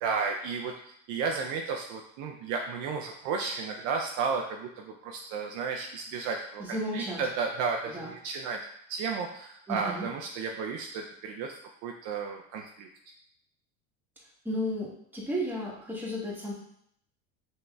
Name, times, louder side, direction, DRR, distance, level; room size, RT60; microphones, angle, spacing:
voice 1, 0.0-8.6 8.9-12.9, right 5 dB, 50° right, 2 dB, 0.6 m, -33 dB
voice 2, 6.6-7.2 7.9-8.1 9.7-10.1 14.4-16.5, equal, 5° right, -4 dB, 1.3 m, -33 dB
5.4 x 2.9 x 2.3 m, 0.71 s
hypercardioid pair, 90°, 38 cm